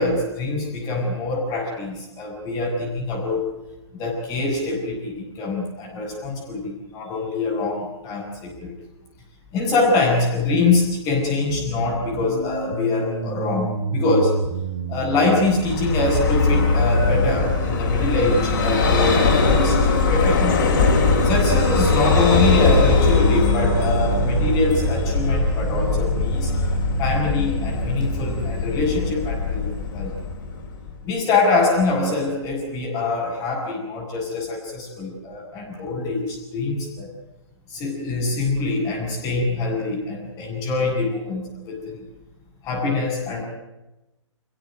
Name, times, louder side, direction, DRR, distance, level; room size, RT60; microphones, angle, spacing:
voice 1, 0.0-3.6 3.9-8.8 9.5-14.4 14.9-20.6 21.2-26.5 27.0-29.7 29.9-30.1 31.0-37.1 37.7-42.0 42.6-43.4, left 3 dB, 20° left, -5 dB, 7.0 m, -24 dB
sound 1, 11.5-28.4, right 5 dB, 40° right, 3.1 m, -29 dB
Vehicle, 15.5-31.0, left 4 dB, 40° left, 7.0 m, -21 dB
27.0 x 16.0 x 9.4 m, 0.99 s
figure-of-eight pair, 135°, 16 cm